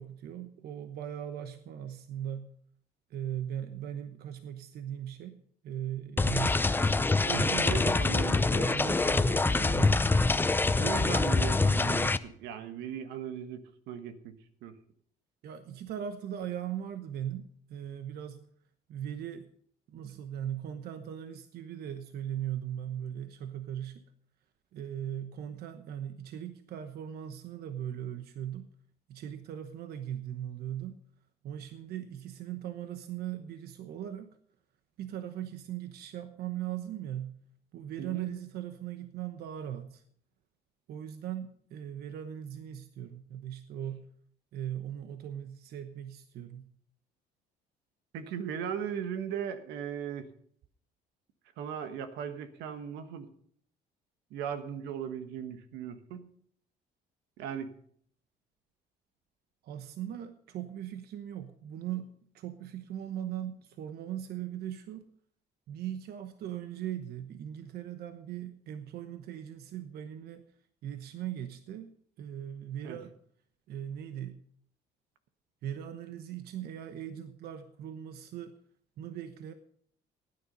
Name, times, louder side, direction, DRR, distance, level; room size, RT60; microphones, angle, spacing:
voice 1, 0.0-2.5 3.1-6.6 7.3-10.1 15.4-18.4 18.9-19.5 19.9-24.0 24.7-28.7 29.1-31.0 31.4-34.4 35.0-37.4 37.7-40.0 40.9-44.1 44.5-46.7 59.6-65.1 65.7-70.5 70.8-71.9 72.2-73.1 73.7-74.4 75.6-78.5 79.0-79.5, right 10 dB, 70° right, 9 dB, 1.0 m, -39 dB
sound 1, 6.2-12.2, left 3 dB, 10° left, 0.6 m, -25 dB
voice 2, 7.3-8.4 10.7-14.3 14.6-14.7 38.0-38.3 48.1-50.3 51.6-53.3 54.3-56.3 57.4-57.8 72.8-73.0, right 8 dB, 85° right, 9 dB, 1.4 m, -37 dB
15.5 x 9.7 x 5.4 m, 0.62 s
cardioid pair, 110°, 17 cm